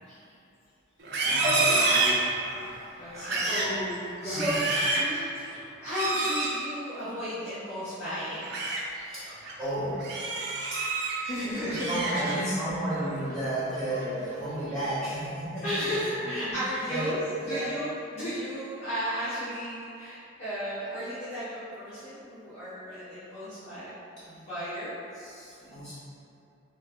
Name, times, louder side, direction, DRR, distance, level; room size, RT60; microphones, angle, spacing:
Livestock farm animals working animals, 1.0-2.7 3.1-3.8 4.2-5.1 5.9-6.6 8.2-8.8 9.3-9.5 10.0-11.2 11.5-12.6 13.0-13.3 13.7-14.2, right 3 dB, 55° right, 0.4 m, -28 dB
voice 1, 1.2-4.6 8.9-10.0 10.6-10.8 11.4-15.6 16.4-16.5 16.9-17.2 17.4-17.7 25.1-26.0, right 1 dB, 5° left, -14 dB, 1.1 m, -33 dB
voice 2, 3.0-3.6 4.2-4.6 4.9-8.5 11.2-12.0 12.5-12.6 15.6-24.0 24.2-24.9, equal, 30° left, -15 dB, 0.7 m, -34 dB
3.2 x 2.2 x 3.6 m, 2.7 s
head